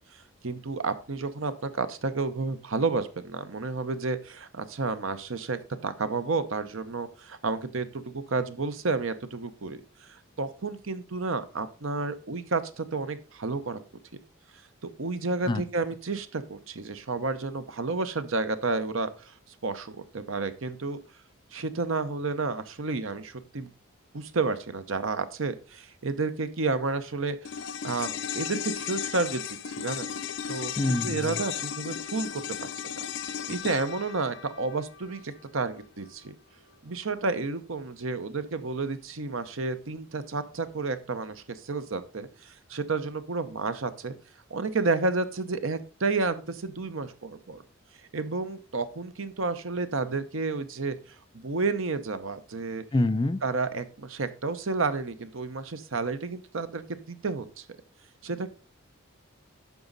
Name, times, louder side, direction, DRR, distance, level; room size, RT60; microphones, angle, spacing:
voice 1, 0.4-13.8 14.8-19.3 19.6-21.0 21.5-23.7 24.1-27.5 27.8-30.1 30.5-36.4 36.8-44.1 44.5-47.6 48.1-51.0 51.3-52.8 53.4-57.6 58.2-58.5, right 3 dB, 65° right, 12 dB, 0.8 m, -31 dB
sound 1, 27.4-35.9 36.2-36.3, left 8 dB, 60° left, 0.7 m, -35 dB
voice 2, 30.8-31.4 52.9-53.4, left 2 dB, 20° left, 12 dB, 0.3 m, -26 dB
9.3 x 6.0 x 4.0 m, 0.36 s
head